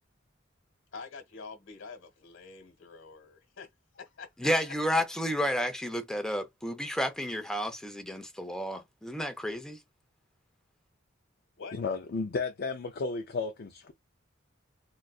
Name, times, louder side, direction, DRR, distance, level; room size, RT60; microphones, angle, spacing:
voice 1, 0.9-4.5 11.6-11.8, left 4 dB, 85° left, 1.1 m, -46 dB
voice 2, 4.4-9.8, equal, 5° left, 0.5 m, -31 dB
voice 3, 11.7-13.9, left 4 dB, 50° left, 0.4 m, -33 dB
3.8 x 2.2 x 2.3 m
head